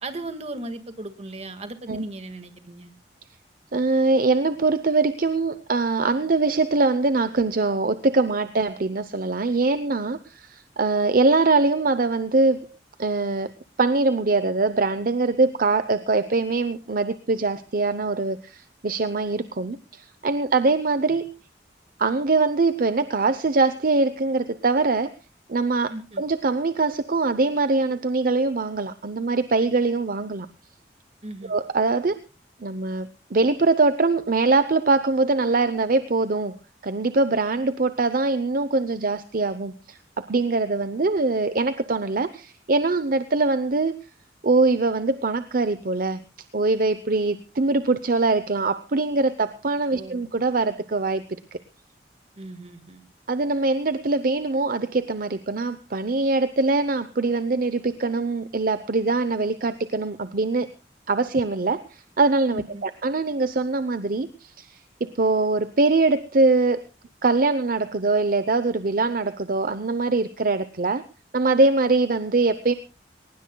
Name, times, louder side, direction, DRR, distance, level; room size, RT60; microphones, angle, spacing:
voice 1, 0.0-2.9 25.9-26.2 31.2-31.5 49.9-50.2 52.4-53.0 62.5-62.8, right 2 dB, 40° right, 8 dB, 1.8 m, -36 dB
voice 2, 3.7-12.7 13.0-13.5 13.8-21.3 22.0-25.1 25.5-30.5 31.5-32.2 32.6-36.5 36.8-43.9 44.4-46.2 46.5-51.2 51.5-51.6 53.3-60.7 61.1-64.8 65.0-66.8 67.2-71.0 71.3-72.7, right 3 dB, 55° right, 12 dB, 0.7 m, -23 dB
22.5 x 20.0 x 2.3 m, 0.32 s
head